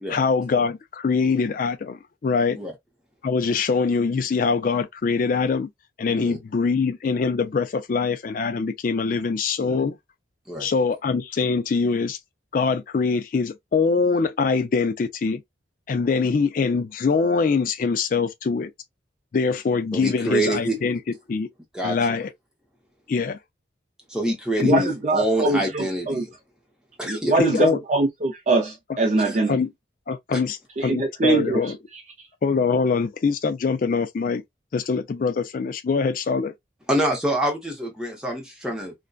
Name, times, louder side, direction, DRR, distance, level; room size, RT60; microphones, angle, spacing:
voice 1, 0.1-2.6 3.2-5.7 6.0-10.0 10.6-12.2 12.5-15.4 15.9-18.7 19.3-21.0 21.3-21.5 21.8-22.3 23.1-23.4 24.6-24.8 27.4-27.8 29.5-29.7 30.1-31.8 32.4-34.4 34.7-36.5, left 5 dB, 45° left, 0.3 m, -23 dB
voice 2, 19.9-20.8 21.7-22.2 24.1-26.3 27.0-27.3 29.2-29.3 36.9-38.9, right 1 dB, 5° right, 0.7 m, -26 dB
voice 3, 24.6-26.2 27.0-29.6 30.8-32.3, right 2 dB, 40° right, 0.4 m, -23 dB
2.6 x 2.2 x 2.2 m
head